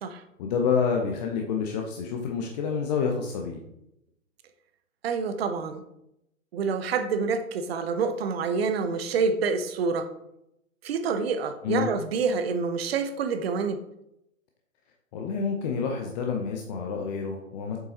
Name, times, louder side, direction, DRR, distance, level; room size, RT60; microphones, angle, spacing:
voice 1, 0.4-3.6 11.6-11.9 15.1-17.8, left 6 dB, 30° left, 2 dB, 0.8 m, -28 dB
voice 2, 5.0-5.8 6.5-10.1 10.8-13.8, right 5 dB, 50° right, 8 dB, 0.9 m, -27 dB
7.6 x 5.4 x 2.9 m, 0.83 s
figure-of-eight pair, 120°, 40 cm